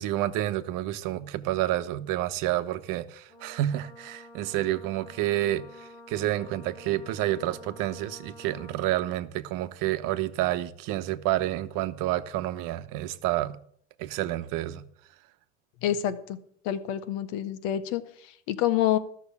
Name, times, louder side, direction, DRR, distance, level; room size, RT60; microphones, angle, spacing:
voice 1, 0.0-13.6 14.0-14.8, right 14 dB, 65° right, 1.0 m, -29 dB
Brass instrument, 3.3-9.1, left 1 dB, 90° left, 2.7 m, -49 dB
voice 2, 15.8-16.4 16.6-19.0, left 11 dB, 75° left, 1.4 m, -28 dB
13.5 x 6.4 x 8.4 m
supercardioid pair, 90°, 35 cm